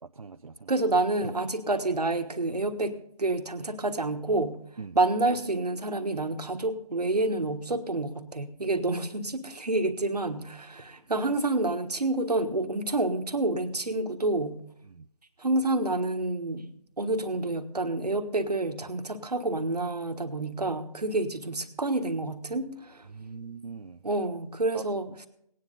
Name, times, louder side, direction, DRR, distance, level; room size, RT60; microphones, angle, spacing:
voice 1, 0.0-0.7 4.8-5.0 14.9-15.1 23.1-24.0 24.7-24.8, right 5 dB, 60° right, 8 dB, 0.5 m, -42 dB
voice 2, 0.7-4.6 4.9-14.6 15.4-16.7 17.0-23.1 24.0-25.3, right 2 dB, 75° right, 7 dB, 1.5 m, -28 dB
18.0 x 9.9 x 4.0 m, 0.72 s
figure-of-eight pair, 165°, 21 cm